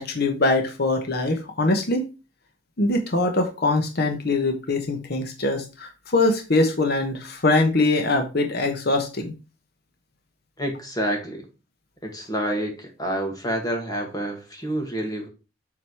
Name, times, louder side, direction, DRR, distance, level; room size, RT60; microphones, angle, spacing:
voice 1, 0.0-2.0 2.8-9.3, left 2 dB, 55° left, 5 dB, 1.1 m, -23 dB
voice 2, 10.6-11.5 12.0-15.3, equal, 20° left, 2 dB, 2.0 m, -28 dB
7.6 x 3.9 x 4.7 m, 0.30 s
head